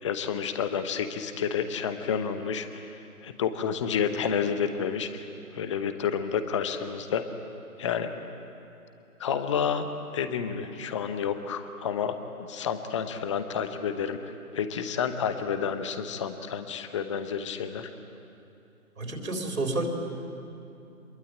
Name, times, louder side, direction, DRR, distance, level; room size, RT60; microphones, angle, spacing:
voice 1, 0.0-2.8 3.2-5.3 5.5-7.2 7.8-8.1 9.2-9.9 10.1-17.9, left 7 dB, 20° left, 9 dB, 1.0 m, -30 dB
voice 2, 19.0-19.9, right 2 dB, 65° right, 2 dB, 3.8 m, -30 dB
27.0 x 22.0 x 9.0 m, 2.8 s
figure-of-eight pair, 145°, 45 cm